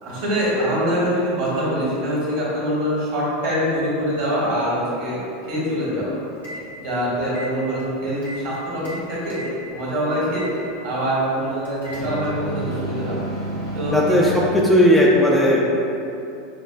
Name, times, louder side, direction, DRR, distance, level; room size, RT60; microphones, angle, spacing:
voice 1, 0.0-5.2 5.5-6.2 6.8-9.4 9.7-10.5 10.8-13.2 13.7-14.0, equal, 60° right, -7 dB, 1.5 m, -24 dB
sound 1, 6.3-6.6 7.2-8.4 8.7-9.5 10.3-10.5 11.6-14.5, right 1 dB, 90° right, 1.4 m, -30 dB
voice 2, 13.9-15.6, equal, ahead, -5 dB, 0.5 m, -16 dB
6.6 x 2.3 x 2.2 m, 2.7 s
figure-of-eight pair, 80°, 0 cm